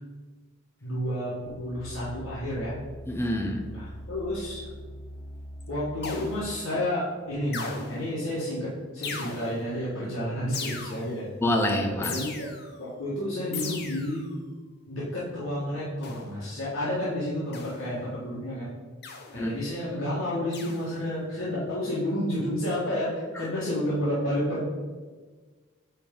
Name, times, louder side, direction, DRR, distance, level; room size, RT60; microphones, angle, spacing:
voice 1, 0.8-2.8 3.7-4.6 5.7-11.3 12.0-12.5 12.8-14.3 14.9-18.7 19.3-24.7, left 1 dB, 70° left, -9 dB, 1.7 m, -30 dB
sound 1, 1.5-6.6 7.2-7.3, equal, 10° right, 1.5 m, -42 dB
voice 2, 3.1-3.6 11.4-12.2 19.4-19.5 23.4-23.5, left 1 dB, 10° left, 2 dB, 0.6 m, -26 dB
sound 2, 6.0-6.6 7.5-8.2 9.0-9.7 10.5-11.3 12.0-12.8 13.5-14.3 16.0-16.4 17.5-18.0 19.0-19.5 20.5-21.0, left 4 dB, 50° left, 0.8 m, -38 dB
8.8 x 3.5 x 3.8 m, 1.4 s
head